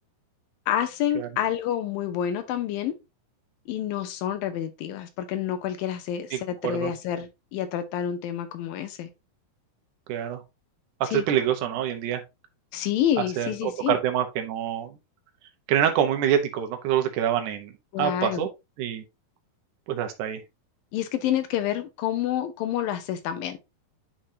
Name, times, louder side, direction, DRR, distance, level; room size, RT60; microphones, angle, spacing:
voice 1, 0.7-3.0 3.7-9.1 11.1-11.2 12.7-14.0 17.9-18.5 20.9-23.6, left 10 dB, 75° left, 2.5 m, -28 dB
voice 2, 6.3-6.9 10.1-10.4 11.0-12.2 13.4-14.9 15.7-17.7 18.0-18.5 18.8-19.0 19.9-20.4, right 10 dB, 70° right, 2.1 m, -26 dB
10.0 x 3.8 x 2.7 m
omnidirectional pair, 4.4 m